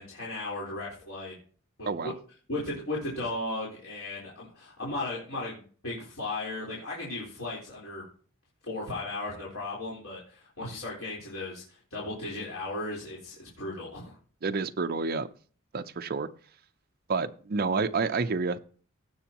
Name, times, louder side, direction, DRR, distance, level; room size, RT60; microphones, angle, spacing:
voice 1, 0.0-1.4 1.8-2.1 2.5-8.0 8.6-14.2, left 2 dB, 75° left, -6 dB, 3.9 m, -36 dB
voice 2, 14.4-15.3 15.7-16.3 17.1-18.6, right 4 dB, 45° right, 8 dB, 0.6 m, -29 dB
17.0 x 6.8 x 3.0 m, 0.41 s
head